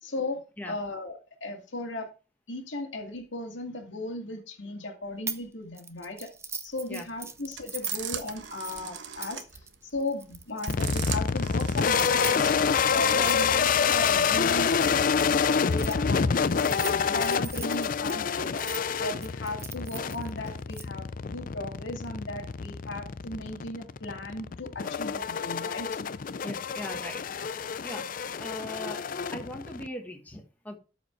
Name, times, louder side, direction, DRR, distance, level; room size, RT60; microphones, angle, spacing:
voice 1, 0.0-0.4 0.7-2.1 2.5-6.3 6.6-9.4 9.8-12.5 12.9-16.7 17.1-18.6 19.0-25.9, left 2 dB, 85° left, 3 dB, 2.3 m, -36 dB
sound 1, 5.3-5.5 5.8-11.1 11.8-15.9 16.5-18.8 19.2-20.8, right 5 dB, 15° right, 0.6 m, -41 dB
sound 2, 6.8-12.7, right 9 dB, 70° right, 1.0 m, -40 dB
sound 3, 10.7-29.9, left 6 dB, 45° left, 0.4 m, -27 dB
voice 2, 26.4-27.2 27.8-28.1 28.4-30.8, left 1 dB, 10° left, 2 dB, 1.6 m, -39 dB
12.5 x 5.1 x 4.5 m, 0.33 s
head